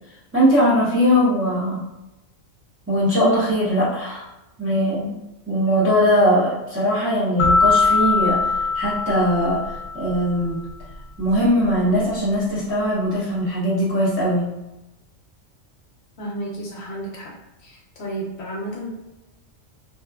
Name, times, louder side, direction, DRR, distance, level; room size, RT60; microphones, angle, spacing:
voice 1, 0.3-1.8 2.9-4.2 4.6-5.2 5.5-8.4 8.7-9.6 9.9-10.6 11.2-14.5, equal, 15° right, -9 dB, 0.5 m, -20 dB
sound 1, 7.4-10.2, left 4 dB, 40° left, 0.5 m, -21 dB
voice 2, 16.2-17.3 17.6-18.9, right 1 dB, 65° left, -3 dB, 0.8 m, -32 dB
3.0 x 2.2 x 2.2 m, 0.99 s
omnidirectional pair, 1.3 m